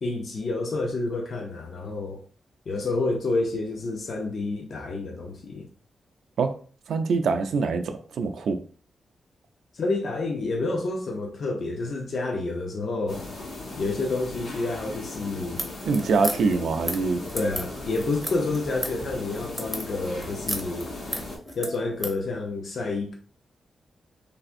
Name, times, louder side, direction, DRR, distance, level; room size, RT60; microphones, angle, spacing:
voice 1, 0.0-2.2 2.7-5.6 9.7-13.2 13.8-15.6 17.3-20.9 21.6-23.1, left 3 dB, 55° left, 0.5 m, -29 dB
voice 2, 6.9-8.6 15.5-17.2, right 4 dB, 80° right, 0.3 m, -25 dB
sound 1, 13.1-21.4, left 2 dB, 85° left, 1.1 m, -37 dB
sound 2, 15.6-22.2, equal, 10° left, 0.6 m, -34 dB
3.3 x 2.5 x 2.5 m
wide cardioid pair, 125°, 0 cm